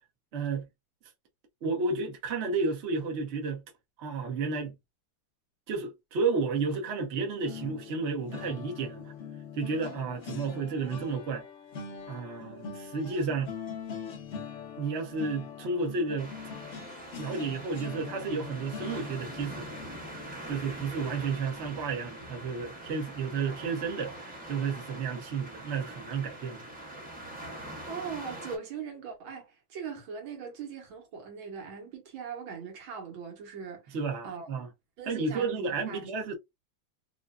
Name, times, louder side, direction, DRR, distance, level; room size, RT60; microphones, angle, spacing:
voice 1, 0.3-0.7 1.6-3.6 4.0-4.7 5.7-9.1 9.5-11.5 12.1-13.5 14.8-16.3 17.2-19.9 20.5-26.7 33.9-34.7 35.1-36.3, right 4 dB, 45° right, 1.0 m, -32 dB
sound 1, 7.4-22.6 23.0-23.2 23.5-23.7, left 7 dB, 75° left, 0.6 m, -43 dB
sound 2, 16.2-28.6, right 1 dB, 5° right, 0.8 m, -43 dB
voice 2, 27.9-34.0 34.2-34.5 35.0-36.0, right 6 dB, 80° right, 1.9 m, -40 dB
3.9 x 2.2 x 2.2 m
omnidirectional pair, 2.2 m